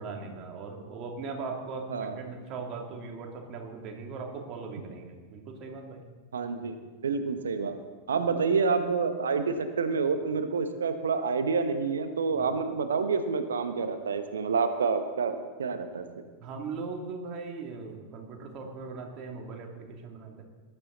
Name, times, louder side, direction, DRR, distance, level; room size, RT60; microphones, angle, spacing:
voice 1, 0.0-6.0 8.1-8.2 12.3-12.5 16.4-20.4, right 4 dB, 35° right, 2 dB, 2.8 m, -39 dB
voice 2, 6.3-6.8 7.0-7.8 8.1-16.0, right 5 dB, 70° right, 9 dB, 1.2 m, -28 dB
20.0 x 12.5 x 4.0 m, 1.4 s
figure-of-eight pair, 90°, 0 cm